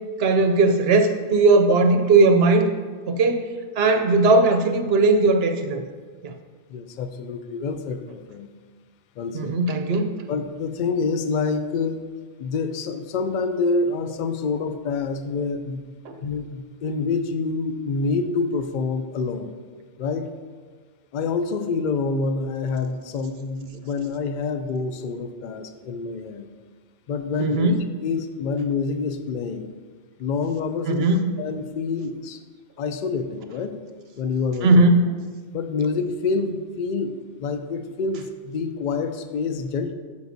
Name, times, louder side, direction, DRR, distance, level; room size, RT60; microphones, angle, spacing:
voice 1, 0.2-2.7 3.1-3.5 3.8-5.8 6.2-6.3 9.3-10.1 16.1-16.2 27.4-27.8 30.8-31.2 34.6-35.1, right 3 dB, 65° right, 6 dB, 0.8 m, -18 dB
voice 2, 6.7-8.5 9.2-9.5 10.3-12.0 12.4-15.8 16.2-19.5 20.0-20.3 21.1-26.5 27.1-27.7 28.0-29.6 30.2-31.0 31.4-32.4 32.8-33.7 34.2-34.9 35.5-39.9, left 4 dB, 55° left, 9 dB, 0.5 m, -27 dB
9.2 x 6.9 x 2.7 m, 1.5 s
omnidirectional pair, 1.2 m